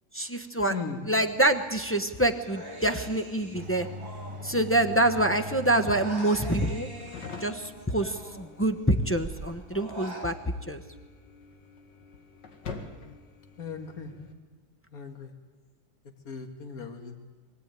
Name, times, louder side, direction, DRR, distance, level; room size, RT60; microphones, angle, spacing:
voice 1, 0.1-0.7 1.1-3.9 4.4-6.9 7.4-10.3 10.7-10.8, right 1 dB, 10° left, 5 dB, 0.7 m, -26 dB
voice 2, 0.7-1.1 13.6-14.1 14.9-15.3 16.2-17.2, left 5 dB, 50° left, 5 dB, 2.4 m, -37 dB
sound 1, 1.1-14.3, left 4 dB, 70° left, 2.6 m, -48 dB
Human voice, 2.4-5.1 5.3-8.8 9.2-10.3, equal, 30° left, 3.6 m, -44 dB
sound 2, 3.5-9.8, equal, 40° right, 0.4 m, -42 dB
23.0 x 16.5 x 9.2 m, 1.4 s
omnidirectional pair, 2.0 m